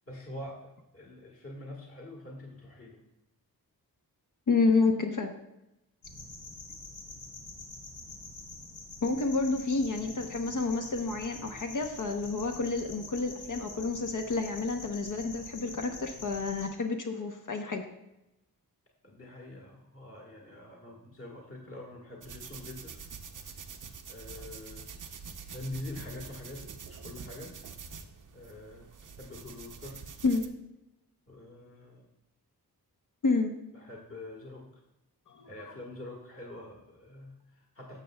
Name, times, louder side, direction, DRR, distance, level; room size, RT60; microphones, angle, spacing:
voice 1, 0.1-3.0 19.0-23.0 24.1-24.9 25.5-27.5 28.3-30.0 31.3-32.1 33.7-34.8 35.5-38.0, left 1 dB, 35° left, -1 dB, 1.4 m, -45 dB
voice 2, 4.5-5.3 9.0-17.8 30.2-30.4 33.2-33.5 35.3-35.5, left 3 dB, 55° left, 4 dB, 0.7 m, -29 dB
sound 1, 6.0-16.6, left 2 dB, 80° left, 2.9 m, -46 dB
sound 2, 22.2-30.5, right 5 dB, 55° right, 0.6 m, -46 dB
12.0 x 6.9 x 2.2 m, 0.91 s
wide cardioid pair, 125°, 38 cm